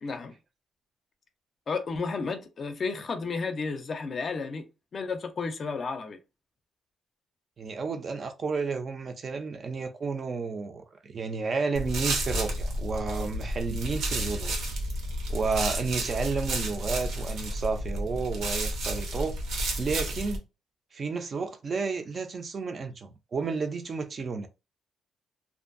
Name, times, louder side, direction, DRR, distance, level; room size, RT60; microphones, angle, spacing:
voice 1, 0.0-0.4 1.7-4.7 4.9-6.2, left 4 dB, 40° left, 0.4 m, -32 dB
voice 2, 7.6-14.6 15.3-19.4 19.8-20.4 20.9-24.5, right 4 dB, 35° right, 0.4 m, -31 dB
sound 1, 11.7-20.4, right 1 dB, 80° right, 0.8 m, -31 dB
2.5 x 2.3 x 2.5 m
cardioid pair, 155°, 0 cm